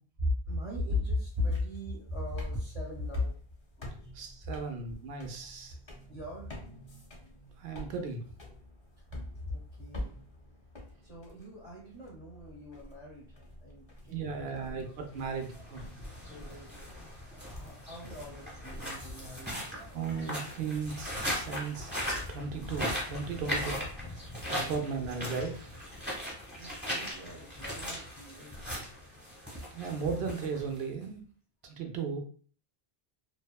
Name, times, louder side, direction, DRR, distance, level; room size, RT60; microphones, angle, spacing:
voice 1, 0.2-3.3 3.8-4.1 5.7-6.5 9.5-10.2 11.0-15.1 15.5-15.6 16.3-16.7 17.3-19.6 24.5-25.0 26.5-28.9, left 2 dB, 40° right, -6 dB, 0.9 m, -38 dB
sound 1, 1.1-19.5, left 1 dB, 35° left, 0.5 m, -49 dB
voice 2, 4.1-5.8 7.6-8.2 14.1-15.8 19.5-19.6 19.9-21.9 22.3-23.8 24.1-24.2 24.5-25.7 29.5-31.2 31.6-32.2, right 5 dB, 70° right, 4 dB, 0.8 m, -36 dB
sound 2, 15.3-31.0, equal, 10° right, 1.0 m, -39 dB
2.7 x 2.1 x 2.3 m, 0.43 s
omnidirectional pair, 1.1 m